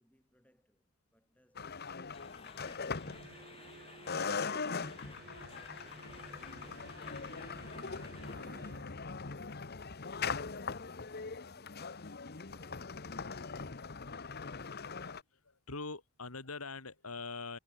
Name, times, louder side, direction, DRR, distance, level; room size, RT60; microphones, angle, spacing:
voice 1, 0.0-2.2, equal, 5° left, 7.8 m, -71 dB
sound 1, 1.5-3.7 4.1-15.2, left 5 dB, 45° left, 1.0 m, -41 dB
sound 2, 2.1-8.4, left 4 dB, 25° left, 1.8 m, -56 dB
sound 3, 3.0-9.0, right 4 dB, 45° right, 0.9 m, -55 dB
voice 2, 15.0-17.6, left 3 dB, 85° left, 2.8 m, -43 dB
head